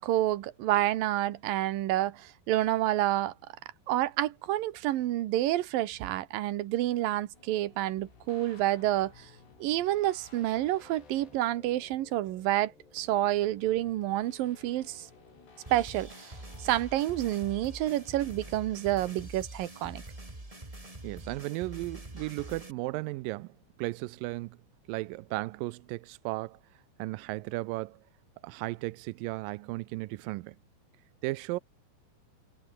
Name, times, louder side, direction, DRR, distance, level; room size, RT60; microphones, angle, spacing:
voice 1, 0.0-3.3 3.9-9.3 9.6-15.1 15.7-16.3 16.6-20.0, right 14 dB, 70° right, 2.6 m, -29 dB
sound 1, 7.3-19.3, left 4 dB, 85° left, 9.4 m, -56 dB
sound 2, 15.7-22.7, right 1 dB, 10° right, 2.6 m, -45 dB
voice 2, 21.0-24.6 24.9-26.6 27.0-28.0 28.4-30.6 31.2-31.6, right 21 dB, 85° right, 2.0 m, -35 dB
omnidirectional pair, 4.7 m